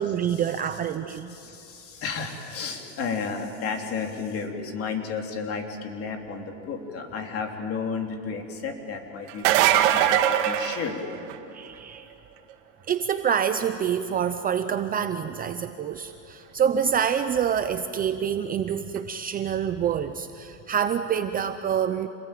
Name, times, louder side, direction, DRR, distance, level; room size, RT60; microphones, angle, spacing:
voice 1, 0.0-1.3 11.5-12.1 12.9-22.1, right 8 dB, 25° right, 9 dB, 0.6 m, -26 dB
voice 2, 1.1-11.0, left 5 dB, 40° left, 3 dB, 3.3 m, -32 dB
sound 1, 9.3-11.5 17.0-17.1 19.0-19.1, right 12 dB, 75° right, 2.1 m, -21 dB
27.5 x 20.5 x 9.2 m, 2.7 s
cardioid pair, 155°, 36 cm